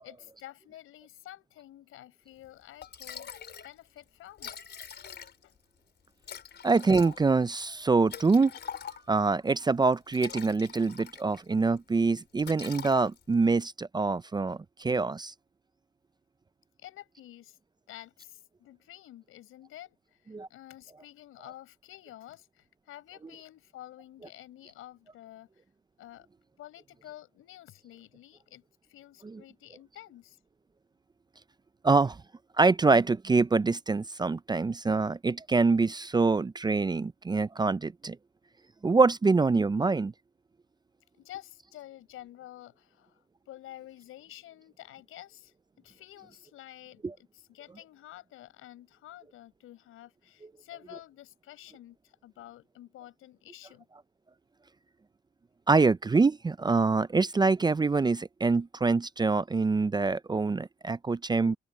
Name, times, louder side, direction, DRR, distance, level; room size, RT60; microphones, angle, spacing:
voice 1, 0.0-3.3 3.6-4.5 5.4-5.5 16.8-17.6 17.9-25.5 26.0-26.3 26.6-28.6 28.9-30.4 41.2-53.9, left 13 dB, 80° left, 6.9 m, -50 dB
Liquid, 2.4-2.5 2.8-3.7 4.0-4.1 4.3-5.6 6.2-9.3 9.9-11.5 11.8-12.0 12.4-13.4, left 8 dB, 55° left, 4.4 m, -43 dB
voice 2, 6.6-8.5 9.1-15.3 20.3-20.5 21.4-21.5 29.2-29.4 31.8-32.2 32.6-38.2 38.8-40.1 47.0-47.1 50.4-50.5 55.7-61.5, right 4 dB, 20° right, 0.5 m, -25 dB
open air
cardioid pair, 80°, 21 cm